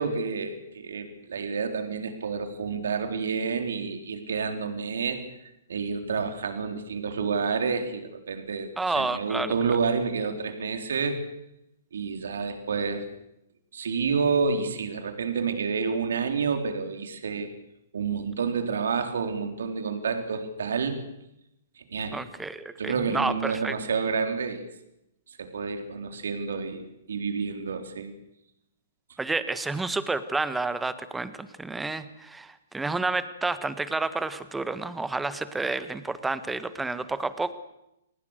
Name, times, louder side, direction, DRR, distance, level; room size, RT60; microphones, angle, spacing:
voice 1, 0.0-11.2 11.9-13.1 13.7-17.5 17.9-21.0 21.8-22.2 22.8-24.7 25.3-28.1, right 5 dB, 70° right, 6 dB, 3.9 m, -29 dB
voice 2, 8.8-9.5 22.1-23.8 29.2-37.5, right 3 dB, 5° right, 12 dB, 1.6 m, -30 dB
28.5 x 19.5 x 6.7 m, 0.85 s
hypercardioid pair, 120°, 0 cm